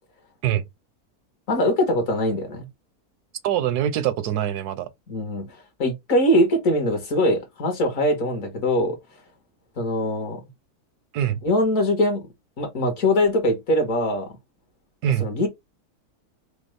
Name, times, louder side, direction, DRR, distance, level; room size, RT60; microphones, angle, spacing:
voice 1, 1.5-2.7 5.1-5.5 5.8-9.0 9.8-10.4 11.4-12.2 12.6-14.3 15.2-15.5, left 1 dB, 60° left, 1.5 m, -22 dB
voice 2, 3.4-4.9 11.1-11.4 15.0-15.3, right 10 dB, 85° right, 1.1 m, -23 dB
5.0 x 2.0 x 3.1 m
omnidirectional pair, 1.7 m